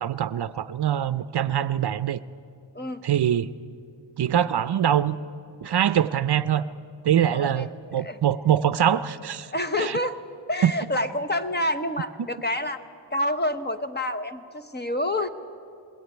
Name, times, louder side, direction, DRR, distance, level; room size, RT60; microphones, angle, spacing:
voice 1, 0.0-2.2 3.0-3.5 4.2-5.2 5.6-6.7 7.0-9.5 9.8-10.0 10.6-10.7, right 10 dB, 55° right, 13 dB, 0.6 m, -23 dB
voice 2, 7.3-7.7 8.0-8.2 9.5-10.2 10.5-12.8 13.1-15.3, left 1 dB, 20° left, 8 dB, 1.0 m, -28 dB
21.5 x 17.5 x 9.2 m, 2.4 s
wide cardioid pair, 125°, 47 cm